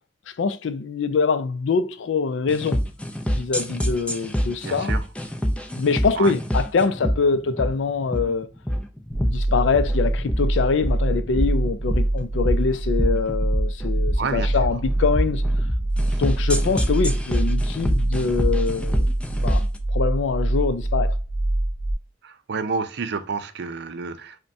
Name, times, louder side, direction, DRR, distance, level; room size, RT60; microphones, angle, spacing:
voice 1, 0.4-2.8 3.3-4.9 5.7-8.5 9.2-15.4 16.2-19.1 19.4-19.6 19.9-21.2, left 4 dB, 75° left, 0.4 m, -24 dB
sound 1, 2.5-19.8, equal, 5° left, 0.4 m, -27 dB
voice 2, 4.6-5.0 6.2-6.3 14.2-14.7 16.1-16.2 22.2-24.4, right 4 dB, 65° right, 0.5 m, -29 dB
sound 2, 9.1-21.9, right 1 dB, 50° left, 0.9 m, -24 dB
5.2 x 2.2 x 2.6 m
head